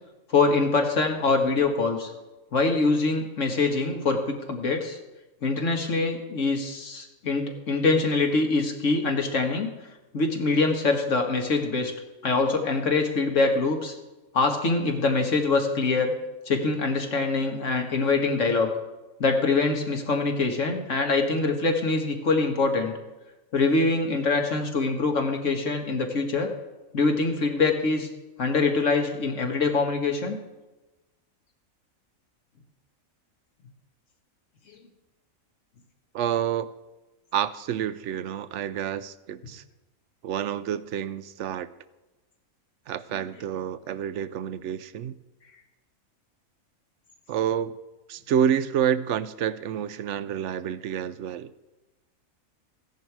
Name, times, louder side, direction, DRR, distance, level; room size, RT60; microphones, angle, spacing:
voice 1, 0.3-2.1 2.5-5.0 5.4-9.7 10.1-11.9 12.2-13.9 14.3-16.1 16.5-18.7 19.2-22.9 23.5-26.5 26.9-28.1 28.4-30.4, left 3 dB, 60° left, 4 dB, 1.8 m, -24 dB
voice 2, 36.1-36.7 37.3-39.6 40.2-41.7 42.9-45.1 47.3-47.8 48.1-51.5, right 9 dB, 65° right, 15 dB, 0.8 m, -28 dB
15.5 x 10.5 x 4.7 m, 1.1 s
omnidirectional pair, 1.5 m